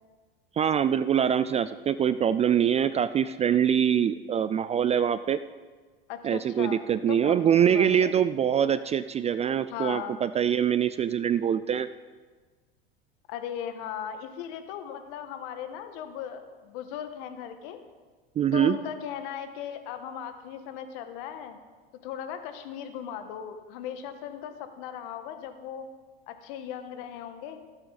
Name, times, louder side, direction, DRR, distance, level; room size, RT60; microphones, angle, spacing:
voice 1, 0.6-5.4 6.2-11.9 18.4-18.8, right 9 dB, 20° right, 14 dB, 0.3 m, -24 dB
voice 2, 6.1-6.8 7.1-7.4 7.7-8.1 9.7-10.2 13.3-17.8 18.5-21.6 22.0-25.9 26.3-27.6, left 9 dB, 65° left, 8 dB, 1.5 m, -37 dB
18.5 x 7.9 x 4.1 m, 1.4 s
hypercardioid pair, 90°, 30 cm